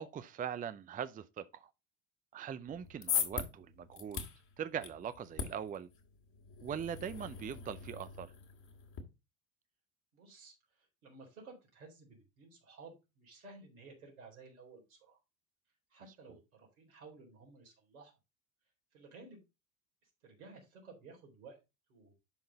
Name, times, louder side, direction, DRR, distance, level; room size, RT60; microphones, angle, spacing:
voice 1, 0.0-1.7 2.3-4.2 4.6-5.9 6.6-8.3, right 8 dB, 20° right, 0.5 m, -41 dB
sound 1, 2.7-9.0, left 7 dB, 45° left, 2.1 m, -41 dB
voice 2, 10.1-15.2 15.9-18.1 18.9-19.4 20.2-21.6 21.9-22.1, right 3 dB, 85° right, 3.9 m, -55 dB
11.5 x 3.9 x 4.0 m
hypercardioid pair, 70°, 42 cm